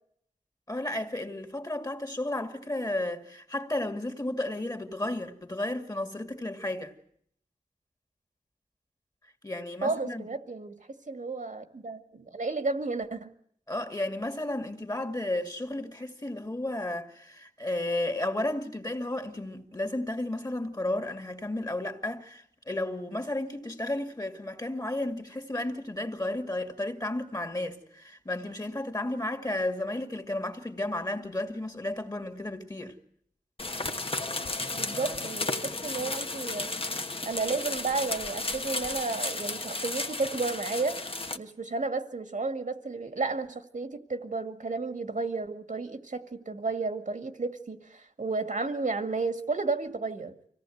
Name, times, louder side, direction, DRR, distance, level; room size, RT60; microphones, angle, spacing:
voice 1, 0.7-6.9 9.4-10.2 13.7-33.0 34.9-35.3, left 1 dB, 25° left, 2.3 m, -33 dB
voice 2, 9.8-10.8 11.1-13.3 34.7-36.8 37.3-41.1 41.3-50.3, right 3 dB, 70° right, 2.0 m, -32 dB
sound 1, 33.6-41.4, left 2 dB, 45° left, 1.2 m, -33 dB
25.0 x 17.5 x 7.9 m
wide cardioid pair, 80°, 14 cm